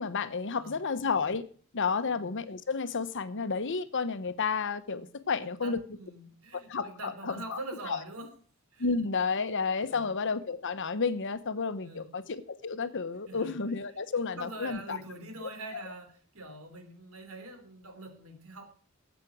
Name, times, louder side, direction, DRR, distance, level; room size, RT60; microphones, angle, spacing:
voice 1, 0.0-1.4 1.7-5.8 6.5-7.6 7.9-8.0 8.8-15.0 15.4-15.8, left 5 dB, 60° left, 1.0 m, -31 dB
voice 2, 5.4-8.3 8.7-8.9 9.8-10.1 11.8-12.1 13.3-13.6 14.3-18.8, right 2 dB, 70° right, 3.3 m, -44 dB
13.0 x 8.3 x 6.0 m
head